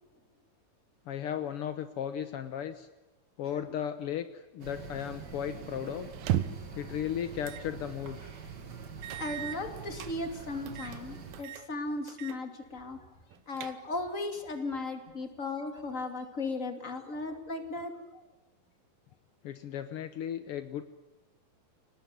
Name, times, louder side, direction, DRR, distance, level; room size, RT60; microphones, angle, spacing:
voice 1, 1.1-2.9 3.4-6.1 6.7-8.3 19.4-20.8, left 9 dB, 75° left, 10 dB, 1.3 m, -35 dB
sound 1, 4.6-11.4, right 5 dB, 35° right, 2.0 m, -45 dB
sound 2, 6.1-6.7 7.4-7.7 8.1-8.2 9.0-10.1 10.7-11.0 11.3-11.7 12.1-12.4 12.7-12.8 13.3-14.1, right 12 dB, 90° right, 2.9 m, -35 dB
voice 2, 9.2-13.0 13.5-18.2, left 2 dB, 25° left, 6 dB, 2.5 m, -36 dB
28.0 x 19.0 x 9.5 m, 1.1 s
omnidirectional pair, 4.0 m